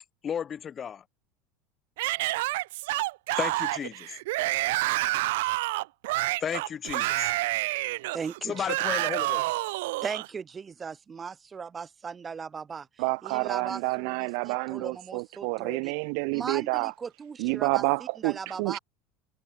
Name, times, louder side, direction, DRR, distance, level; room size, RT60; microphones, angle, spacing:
voice 1, 0.2-1.0 3.4-4.1 6.4-7.3 8.4-9.4, left 8 dB, 25° left, 3.2 m, -33 dB
Yell / Screaming, 2.0-10.3, right 20 dB, 80° right, 0.4 m, -28 dB
voice 2, 8.1-8.7 10.0-12.9 13.2-15.9 16.3-17.8 18.2-18.8, right 6 dB, 20° right, 3.5 m, -38 dB
voice 3, 13.0-16.9 17.4-18.8, right 40 dB or more, 65° right, 1.1 m, -29 dB
supercardioid pair, 150°, 0 cm